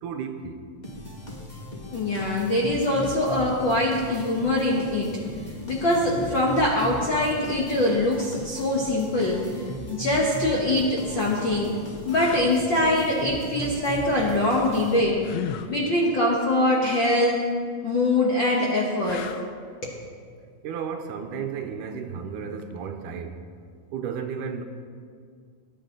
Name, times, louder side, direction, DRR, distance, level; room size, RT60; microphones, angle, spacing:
voice 1, 0.0-0.6 20.6-23.4 23.9-24.6, right 6 dB, 75° right, 6 dB, 2.2 m, -33 dB
sound 1, 0.8-15.4, equal, 25° left, 0.8 m, -38 dB
voice 2, 1.9-5.2 5.7-11.7 12.0-15.2 15.7-17.5 17.8-19.3 19.8-19.9, left 1 dB, 55° left, -3 dB, 1.4 m, -23 dB
sound 2, 12.1-12.6 15.2-15.8 19.0-19.6 22.6-22.8, left 10 dB, 80° left, 1.7 m, -35 dB
20.0 x 9.8 x 3.8 m, 2.1 s
omnidirectional pair, 3.8 m